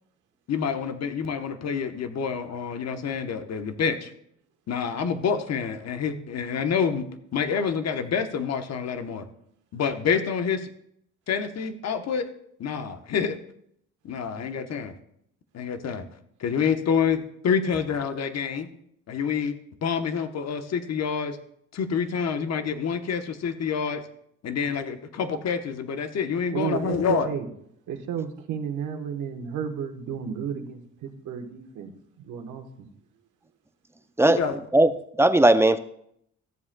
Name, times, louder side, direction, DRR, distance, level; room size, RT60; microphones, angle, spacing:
voice 1, 0.5-4.1 4.7-7.0 7.3-9.2 9.7-10.6 11.3-12.2 12.6-13.3 14.0-14.9 15.5-16.0 16.4-18.7 19.1-19.5 19.8-21.4 21.7-24.0 24.4-27.3 34.3-34.6, left 6 dB, 60° left, 8 dB, 1.0 m, -27 dB
voice 2, 26.5-27.5 27.9-31.9 32.2-32.9, right 7 dB, 85° right, 4 dB, 1.2 m, -32 dB
voice 3, 34.2-34.9 35.2-35.8, right 1 dB, 10° right, 10 dB, 0.5 m, -18 dB
13.5 x 7.4 x 2.3 m, 0.70 s
cardioid pair, 90°, 30 cm